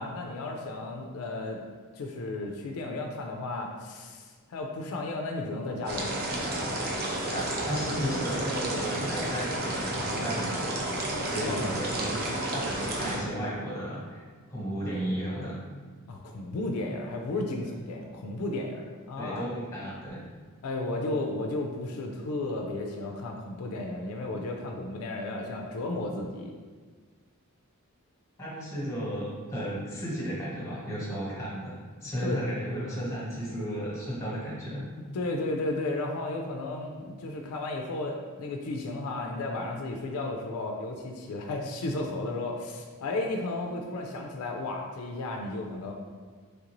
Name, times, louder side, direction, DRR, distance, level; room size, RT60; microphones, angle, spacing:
voice 1, 0.0-1.6 2.0-6.2 10.2-10.3 11.4-11.6 16.1-19.4 20.6-26.5 32.2-32.4 35.1-45.9, left 2 dB, 75° left, 1 dB, 0.3 m, -33 dB
sound 1, 5.9-13.2, right 1 dB, 45° right, 0.5 m, -31 dB
voice 2, 7.2-12.2 12.5-14.2 14.5-15.6 19.2-20.2 28.4-34.9, equal, 15° left, -7 dB, 1.0 m, -34 dB
3.2 x 2.5 x 2.9 m, 1.5 s
head